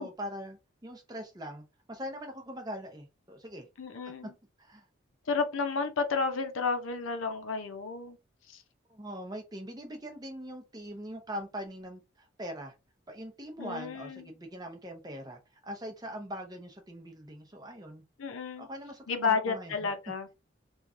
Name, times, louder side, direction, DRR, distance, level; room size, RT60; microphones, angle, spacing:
voice 1, 0.0-3.7 4.2-4.3 4.6-4.8 8.9-12.7 13.1-18.0 18.6-19.9, equal, 20° right, 0.6 m, -42 dB
voice 2, 3.8-4.3 5.3-8.2 8.5-8.6 13.6-14.2 18.2-18.7 19.1-20.3, left 5 dB, 85° left, 0.6 m, -31 dB
3.0 x 2.4 x 2.4 m
head